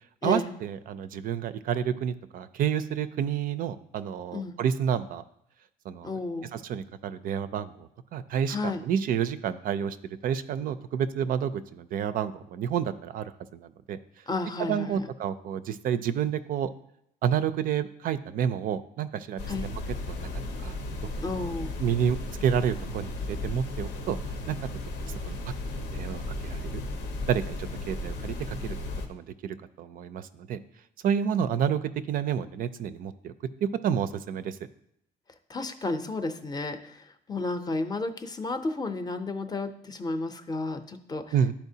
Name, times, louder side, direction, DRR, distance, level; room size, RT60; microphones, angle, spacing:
voice 1, 0.2-5.2 5.9-6.2 6.5-10.0 10.2-14.0 14.7-16.7 17.2-19.7 20.1-20.3 20.6-20.7 21.8-24.2 24.5-24.6 25.1-25.4 25.8-26.8 27.3-28.8 29.1-30.6 31.0-33.3 33.8-34.6 41.3-41.5, right 8 dB, 55° right, 13 dB, 0.4 m, -29 dB
voice 2, 6.0-6.5 8.5-8.8 14.3-15.1 19.5-19.7 21.2-21.8 35.5-41.3, left 3 dB, 25° left, 9 dB, 0.6 m, -32 dB
sound 1, 19.4-29.1, left 2 dB, 90° left, 0.9 m, -35 dB
10.5 x 4.3 x 2.7 m, 0.76 s
cardioid pair, 110°, 17 cm